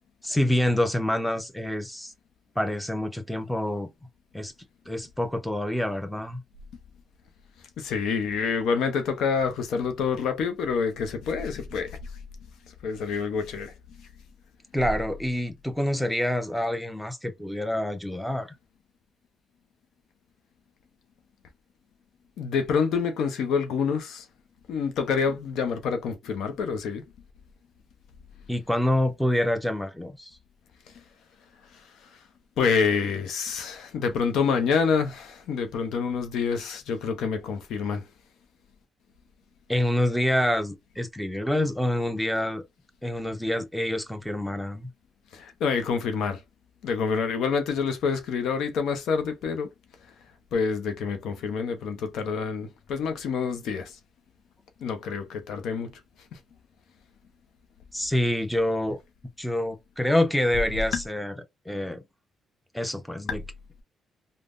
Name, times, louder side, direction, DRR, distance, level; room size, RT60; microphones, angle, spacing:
voice 1, 0.2-2.1 2.6-3.9 4.3-4.5 4.9-6.4 14.7-18.5 28.5-30.3 39.7-42.6 43.0-44.9 57.9-59.0 59.4-61.3 61.7-62.0 62.7-63.4, left 1 dB, ahead, 0.7 m, -26 dB
voice 2, 7.8-12.0 12.8-13.7 22.4-24.2 24.7-27.0 32.6-38.0 45.3-46.4 46.8-49.7 50.5-53.9 54.8-55.9 60.9-61.0, left 5 dB, 80° left, 0.6 m, -27 dB
3.4 x 2.1 x 2.4 m
cardioid pair, 90°, 0 cm